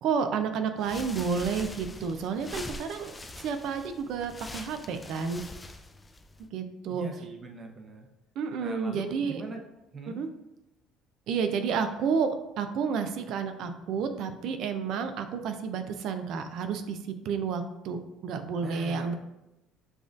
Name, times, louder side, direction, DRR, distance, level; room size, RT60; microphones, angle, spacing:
voice 1, 0.0-3.1 3.4-5.4 6.5-7.1 8.4-9.4 10.2-10.3 11.3-12.3 12.6-17.0 17.2-19.1, right 6 dB, 65° right, 8 dB, 0.4 m, -30 dB
sound 1, 0.8-6.5, left 2 dB, 20° left, 0.3 m, -43 dB
voice 2, 6.9-8.1 8.6-9.6 9.9-10.2 18.6-19.1, right 2 dB, 35° right, 3 dB, 0.7 m, -41 dB
7.1 x 2.5 x 2.5 m, 0.94 s
supercardioid pair, 95°, 0 cm